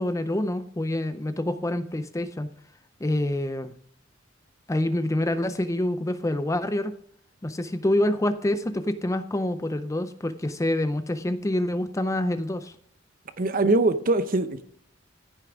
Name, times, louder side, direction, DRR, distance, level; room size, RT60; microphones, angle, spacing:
voice 1, 0.0-2.5 3.0-3.7 4.7-6.9 7.4-12.7, left 1 dB, 15° left, 0.5 m, -26 dB
voice 2, 13.4-14.6, right 2 dB, 45° right, 0.7 m, -22 dB
15.0 x 6.7 x 3.6 m
head